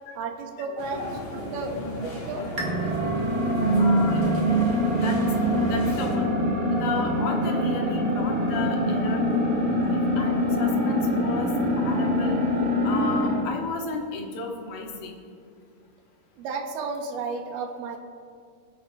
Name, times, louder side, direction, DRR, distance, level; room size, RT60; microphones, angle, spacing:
voice 1, 0.2-1.0 1.3-2.5 16.4-18.0, right 4 dB, 75° right, 4 dB, 2.4 m, -33 dB
sound 1, 0.8-6.1, equal, 65° left, 4.4 m, -35 dB
sound 2, 2.6-13.5, equal, 45° right, 1.2 m, -24 dB
voice 2, 3.8-4.2 4.9-5.2 5.7-6.3 6.7-11.5 11.8-12.4 12.8-15.1, left 3 dB, 80° left, 1 dB, 2.9 m, -33 dB
24.0 x 8.4 x 2.3 m, 2.3 s
omnidirectional pair, 4.0 m